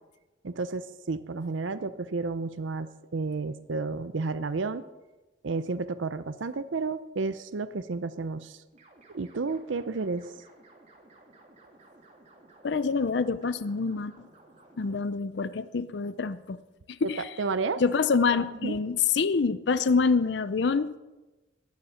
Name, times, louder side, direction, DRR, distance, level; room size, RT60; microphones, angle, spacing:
voice 1, 0.4-4.8 5.4-8.6 9.1-10.3 17.0-17.1 17.4-17.8 18.6-18.8, right 4 dB, 90° right, 13 dB, 0.6 m, -31 dB
sound 1, 8.7-15.0, right 2 dB, 35° right, 2.9 m, -56 dB
voice 2, 12.6-14.3 14.8-16.6 16.9-17.3 17.8-20.9, left 5 dB, 65° left, 15 dB, 0.5 m, -26 dB
21.0 x 9.7 x 5.7 m, 1.1 s
head